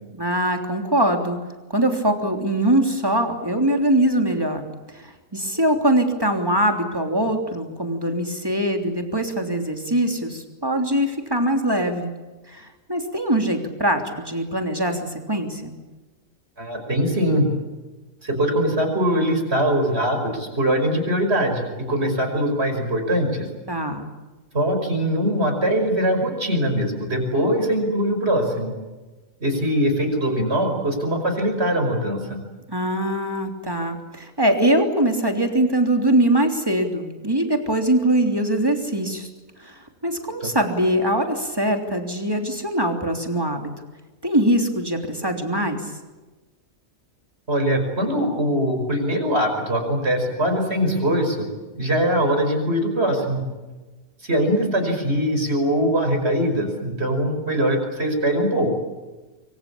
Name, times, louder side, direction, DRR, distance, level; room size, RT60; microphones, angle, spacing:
voice 1, 0.1-1.4 1.7-4.6 4.9-12.1 12.5-15.7 23.7-24.1 32.7-39.3 39.6-43.7 44.2-45.9, right 1 dB, 15° right, 4 dB, 3.3 m, -22 dB
voice 2, 16.6-17.5 18.2-23.5 24.5-28.7 29.4-32.4 40.4-40.5 47.5-51.5 51.8-53.4 54.2-58.8, equal, 50° right, 4 dB, 5.8 m, -22 dB
24.5 x 24.5 x 8.7 m, 1.2 s
omnidirectional pair, 1.4 m